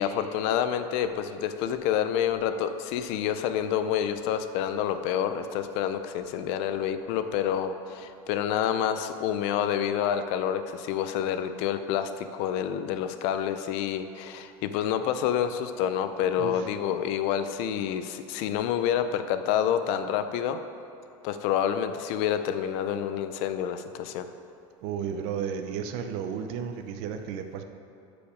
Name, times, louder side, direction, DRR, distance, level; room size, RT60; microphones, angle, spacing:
voice 1, 0.0-20.6 21.2-24.3, left 9 dB, 55° left, 9 dB, 0.5 m, -28 dB
voice 2, 24.8-27.6, right 7 dB, 55° right, 7 dB, 0.7 m, -33 dB
14.0 x 5.1 x 5.0 m, 2.7 s
cardioid pair, 170°, 12 cm